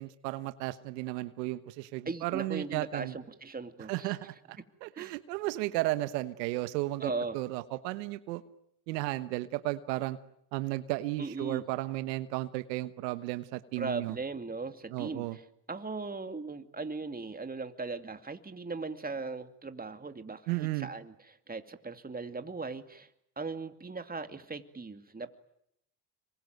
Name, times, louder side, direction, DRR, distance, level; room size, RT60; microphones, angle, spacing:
voice 1, 0.0-3.1 3.9-8.4 8.9-10.2 10.5-14.1 14.9-15.4 20.5-20.9, right 18 dB, 85° right, 13 dB, 1.3 m, -34 dB
voice 2, 2.1-4.2 5.0-5.2 7.0-7.4 11.2-11.7 13.8-15.4 15.7-23.1 23.4-25.3, right 3 dB, 20° right, 8 dB, 2.6 m, -38 dB
26.5 x 23.5 x 9.4 m, 0.76 s
supercardioid pair, 80°, 48 cm